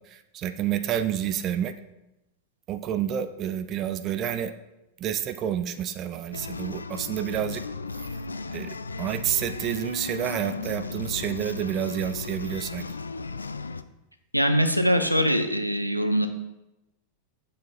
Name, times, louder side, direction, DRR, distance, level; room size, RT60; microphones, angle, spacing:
voice 1, 0.1-1.7 2.7-4.5 5.0-7.6 8.5-12.9, right 10 dB, 35° right, 10 dB, 0.6 m, -29 dB
sound 1, 6.3-13.8, left 4 dB, 80° left, 0.4 m, -35 dB
voice 2, 14.3-16.3, equal, 90° right, 7 dB, 0.8 m, -22 dB
9.0 x 7.6 x 4.3 m, 0.94 s
figure-of-eight pair, 90°, 0 cm